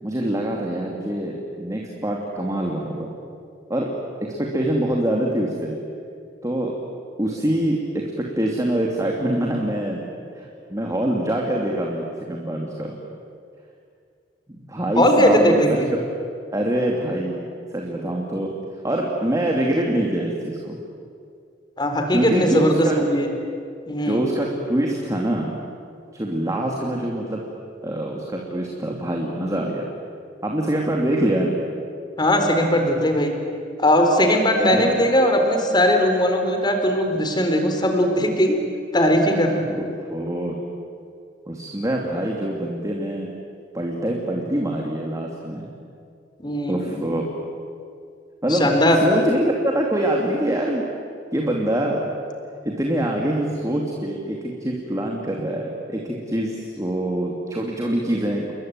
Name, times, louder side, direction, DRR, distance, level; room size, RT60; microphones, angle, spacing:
voice 1, 0.0-3.1 3.7-3.9 4.2-5.8 6.4-6.7 7.2-10.1 10.3-13.0 14.5-16.0 16.5-17.4 17.7-18.5 18.8-20.8 22.1-22.9 24.0-25.6 26.1-27.4 27.8-29.9 30.4-31.6 34.6-34.9 39.7-40.6 41.5-43.3 43.7-45.7 46.7-47.3 48.4-48.7 48.9-50.8 51.3-52.0 52.6-58.5, right 1 dB, 20° right, -1 dB, 2.7 m, -24 dB
voice 2, 15.0-15.9 21.8-23.3 23.9-24.2 32.2-33.3 33.8-38.6 38.9-39.7 46.4-47.0 48.5-49.0, equal, 25° left, 4 dB, 4.0 m, -19 dB
29.5 x 22.0 x 9.1 m, 2.3 s
head